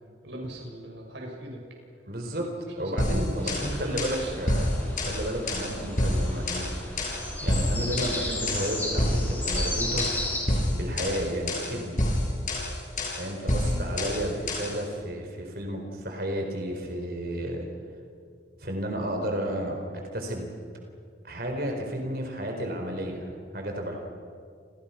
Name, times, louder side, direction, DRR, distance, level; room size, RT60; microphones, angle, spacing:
voice 1, 0.2-1.6 2.8-3.0 3.4-4.3 13.6-13.8, right 1 dB, 75° right, 0 dB, 6.6 m, -37 dB
voice 2, 2.1-6.7 7.4-10.1 10.7-12.0 13.1-17.7 18.6-19.8 20.1-20.5 21.2-23.9, equal, 55° right, 2 dB, 4.4 m, -32 dB
sound 1, 3.0-14.8, left 1 dB, 45° left, 7.3 m, -28 dB
sound 2, 3.4-10.4, left 1 dB, 10° left, 7.2 m, -34 dB
30.0 x 27.5 x 5.9 m, 2.2 s
head